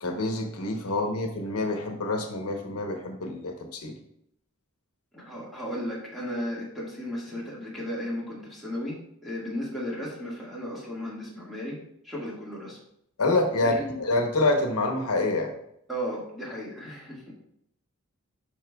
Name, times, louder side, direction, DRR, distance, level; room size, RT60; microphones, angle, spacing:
voice 1, 0.0-3.9 13.2-15.5, left 2 dB, 85° left, 4 dB, 1.0 m, -27 dB
voice 2, 5.1-11.8 12.0-12.8 13.6-14.0 15.9-17.3, equal, ahead, -6 dB, 1.8 m, -35 dB
11.0 x 4.2 x 2.3 m, 0.73 s
head